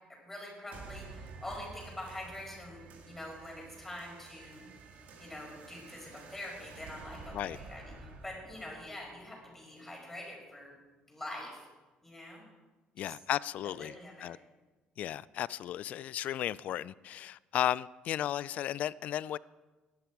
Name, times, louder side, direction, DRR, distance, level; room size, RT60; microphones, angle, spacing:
voice 1, 0.2-4.6 5.2-10.7 11.1-11.6 12.0-12.4 13.0-13.1 13.6-14.3, left 1 dB, 10° left, 5.2 m, -45 dB
sound 1, 0.7-9.7, right 4 dB, 60° right, 2.3 m, -51 dB
voice 2, 13.0-13.9 14.2-14.4 15.0-19.4, left 12 dB, 55° left, 0.3 m, -34 dB
17.5 x 12.0 x 4.8 m
cardioid pair, 145°, 3 cm